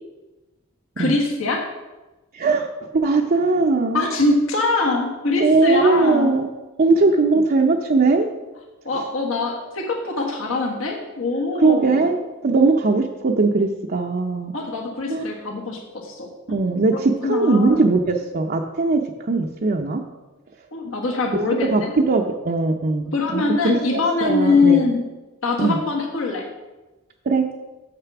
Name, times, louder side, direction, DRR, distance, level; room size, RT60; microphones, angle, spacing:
voice 1, 1.0-1.6 3.9-6.3 8.8-12.1 14.5-16.6 16.9-17.9 20.7-21.9 23.1-25.1 25.4-26.5, left 3 dB, 75° left, 0 dB, 1.4 m, -23 dB
voice 2, 2.3-2.7 2.9-4.0 5.4-6.5 6.8-8.3 11.6-14.5 15.1-15.2 16.5-20.0 21.7-24.8 25.6-25.8 27.3-27.5, right 3 dB, 45° right, 2 dB, 0.6 m, -19 dB
6.8 x 6.8 x 5.9 m, 1.1 s
head